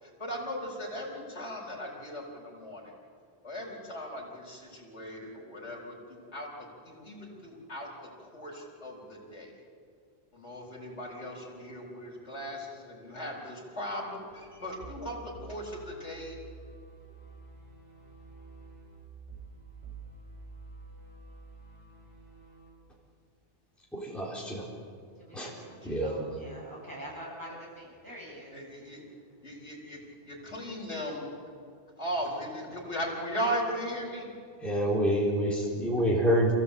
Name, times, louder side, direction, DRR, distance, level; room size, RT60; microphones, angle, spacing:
voice 1, 0.0-2.9 3.4-9.5 10.3-16.4 25.8-26.3 28.5-29.0 29.4-31.3 32.0-34.3, equal, 75° left, -2 dB, 4.6 m, -38 dB
sound 1, 14.3-22.7, right 3 dB, 85° right, 4.6 m, -49 dB
voice 2, 23.9-24.6 25.3-25.5 25.8-26.1 34.6-36.5, equal, ahead, -5 dB, 4.1 m, -27 dB
voice 3, 25.2-28.5, equal, 15° right, -4 dB, 7.9 m, -45 dB
28.0 x 16.0 x 8.4 m, 2.2 s
omnidirectional pair, 1.2 m